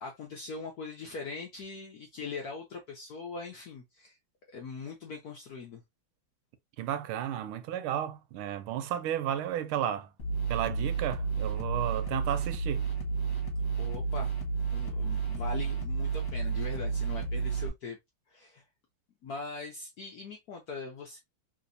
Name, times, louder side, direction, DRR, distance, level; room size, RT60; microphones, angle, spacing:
voice 1, 0.0-4.2 4.5-5.8 13.8-14.3 14.7-18.0 18.3-18.6 19.2-21.2, left 4 dB, 70° left, 0.9 m, -41 dB
voice 2, 6.8-10.1 10.5-12.8, right 10 dB, 80° right, 1.4 m, -33 dB
sound 1, 10.2-17.7, right 5 dB, 40° left, 1.3 m, -31 dB
3.3 x 2.9 x 2.5 m
omnidirectional pair, 2.4 m